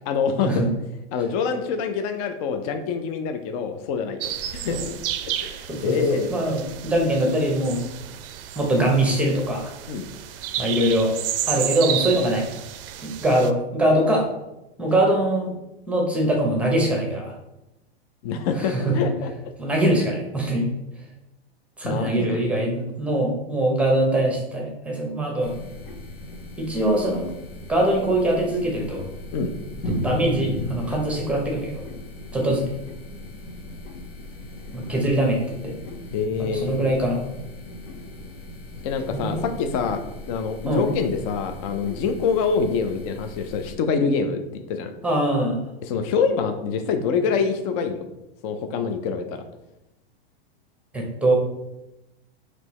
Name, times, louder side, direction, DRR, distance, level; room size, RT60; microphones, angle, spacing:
voice 1, 0.1-0.6 1.1-4.2 4.5-5.0 5.2-6.3 9.9-10.1 18.2-19.3 21.8-22.4 29.3-29.5 36.1-36.8 38.8-40.0 40.3-44.4 44.7-44.9 45.8-48.0 48.4-49.4, left 5 dB, 35° left, 7 dB, 0.4 m, -25 dB
sound 1, 4.2-13.5, right 10 dB, 65° right, 0.5 m, -32 dB
voice 2, 5.7-7.8 8.6-9.7 10.6-11.1 11.5-12.5 13.0-14.2 14.8-15.5 15.9-17.3 18.6-19.1 19.6-20.7 21.8-25.5 26.6-27.3 27.7-29.0 29.9-31.8 32.3-32.7 34.7-35.8 36.4-37.2 39.1-39.4 40.6-40.8 45.0-45.6 50.9-51.4, right 1 dB, 5° right, 0 dB, 0.7 m, -22 dB
sound 2, 25.4-43.8, left 1 dB, 75° left, 1.5 m, -37 dB
4.4 x 3.0 x 3.0 m, 0.92 s
supercardioid pair, 140°, 31 cm